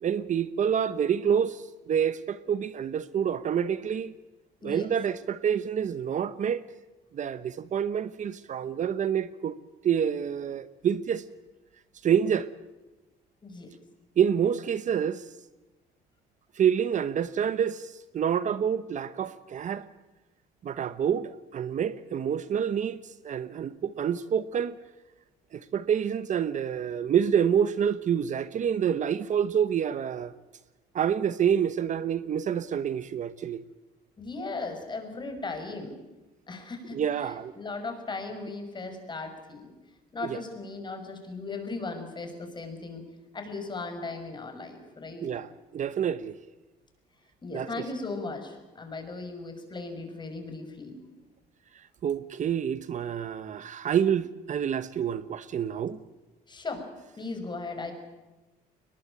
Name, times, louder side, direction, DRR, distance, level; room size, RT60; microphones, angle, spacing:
voice 1, 0.0-4.1 4.6-6.6 7.1-9.6 9.8-11.2 12.0-12.5 14.2-15.3 16.5-19.9 20.6-24.8 25.5-30.3 30.9-33.6 36.9-37.5 40.3-40.4 45.2-46.3 47.5-47.9 51.7-56.0, right 8 dB, 45° right, 1.0 m, -27 dB
voice 2, 34.2-35.9 36.5-37.0 37.6-39.7 40.1-43.0 43.3-45.3 47.4-51.0 56.5-56.9 57.2-57.9, left 3 dB, 25° left, 6.2 m, -37 dB
22.5 x 20.5 x 8.9 m
cardioid pair, 110°, 17 cm